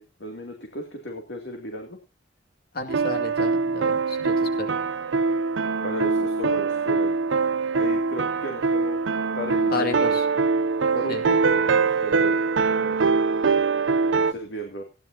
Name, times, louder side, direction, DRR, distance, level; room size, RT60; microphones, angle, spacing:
voice 1, 0.0-2.0 5.8-7.2 7.7-9.0 9.3-9.9 10.9-13.0 14.2-14.8, right 1 dB, 70° left, 2 dB, 2.6 m, -35 dB
voice 2, 2.7-4.7 9.7-10.2 11.1-11.2, left 3 dB, 55° left, 6 dB, 2.3 m, -31 dB
sound 1, 2.9-14.3, right 4 dB, 80° right, 0.6 m, -23 dB
16.0 x 11.0 x 2.8 m, 0.31 s
head